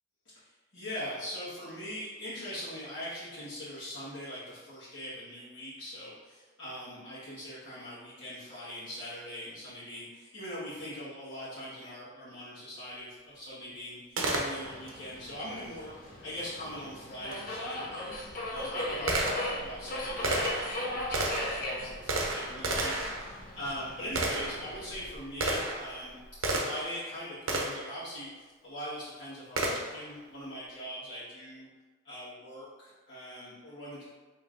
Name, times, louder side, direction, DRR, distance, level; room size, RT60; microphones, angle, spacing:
voice 1, 0.3-14.0 14.3-18.1 18.5-31.7 32.0-34.0, equal, 60° left, -12 dB, 1.3 m, -41 dB
Gunshot gunfire, 14.2-15.0 17.3-17.4 18.1-27.0 27.5-27.9 29.6-30.1, right 2 dB, 90° right, 0.7 m, -33 dB
Subway metro underground, 14.6-25.1, left 1 dB, 45° left, 0.6 m, -38 dB
5.2 x 3.0 x 2.5 m, 1.3 s
head